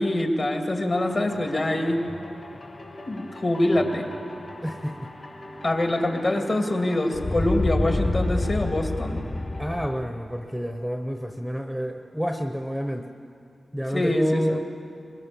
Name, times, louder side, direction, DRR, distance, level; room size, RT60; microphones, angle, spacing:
voice 1, 0.0-2.0 3.1-4.1 5.6-9.2 13.9-14.6, left 1 dB, 40° left, 3 dB, 2.6 m, -24 dB
sound 1, 0.9-9.9, left 2 dB, 55° left, 5.7 m, -32 dB
voice 2, 4.6-5.0 9.6-13.1 13.7-14.6, equal, ahead, 4 dB, 1.1 m, -28 dB
23.5 x 22.0 x 7.1 m, 2.5 s
wide cardioid pair, 110°, 0 cm